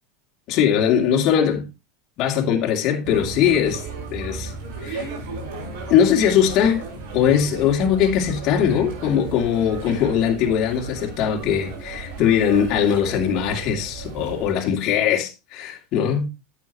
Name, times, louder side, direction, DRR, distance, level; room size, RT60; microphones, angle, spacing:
voice 1, 0.5-1.7 2.2-3.8 4.1-4.5 4.8-5.1 5.9-6.8 7.1-16.3, left 8 dB, 50° left, 2.6 m, -20 dB
sound 1, 3.0-14.5, right 4 dB, 70° right, 5.4 m, -35 dB
9.7 x 8.3 x 3.0 m
hypercardioid pair, 100°, 0 cm